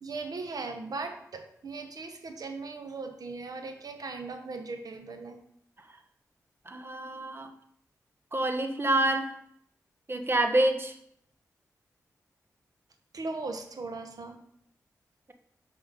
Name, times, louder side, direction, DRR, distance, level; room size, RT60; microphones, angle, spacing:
voice 1, 0.0-5.4 13.1-14.4, right 3 dB, 65° right, 6 dB, 1.2 m, -38 dB
voice 2, 6.7-7.5 8.3-9.3 10.1-10.9, right 1 dB, 35° right, 6 dB, 1.3 m, -27 dB
6.2 x 6.1 x 5.3 m, 0.70 s
cardioid pair, 40°, 7 cm